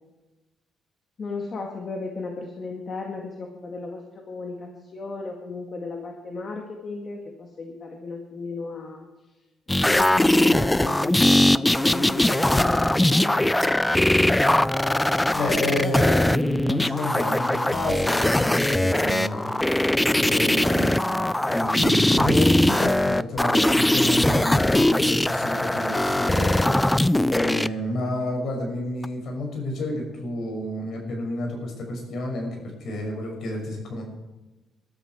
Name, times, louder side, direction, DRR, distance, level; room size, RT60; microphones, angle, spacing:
voice 1, 1.2-9.1 9.7-13.6, left 3 dB, 40° left, 1 dB, 2.0 m, -35 dB
sound 1, 9.7-27.7 29.0-29.1, left 1 dB, 10° left, 0.4 m, -21 dB
voice 2, 15.2-19.5 20.2-21.0 21.4-26.7 27.3-34.0, left 1 dB, 65° left, 1 dB, 6.2 m, -30 dB
22.0 x 13.0 x 4.7 m, 1.1 s
cardioid pair, 110°, 0 cm